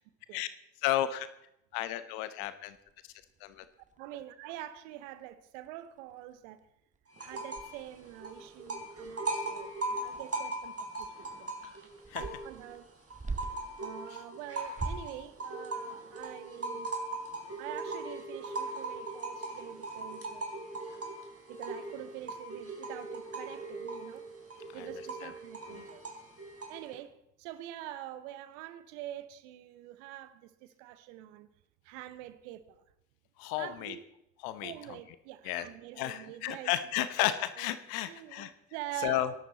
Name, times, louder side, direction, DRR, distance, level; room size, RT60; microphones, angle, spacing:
voice 1, 0.8-1.3 1.7-2.8 3.4-3.7 12.1-12.2 24.7-24.9 25.2-25.3 25.8-25.9 33.4-34.0 34.4-35.0 35.4-35.7 36.0-38.5 39.0-39.3, left 13 dB, 75° left, 1.0 m, -33 dB
sound 1, 2.7-4.2 4.8-4.9 5.1-5.3 5.7-5.8 6.1-6.6 6.9-7.0 7.5-13.8 14.6-15.2, right 3 dB, 20° right, 1.7 m, -44 dB
voice 2, 4.0-6.6 7.2-11.5 12.2-12.9 13.8-16.9 17.6-20.5 21.5-24.3 24.7-26.0 26.7-31.5 31.8-32.8 33.6-34.0 34.6-36.7 37.0-37.7 38.0-39.3, right 13 dB, 80° right, 1.0 m, -45 dB
sound 2, 7.1-7.8 8.0-12.7 13.1-26.9, right 2 dB, 40° right, 3.9 m, -39 dB
22.5 x 11.5 x 4.0 m
hypercardioid pair, 40°, 37 cm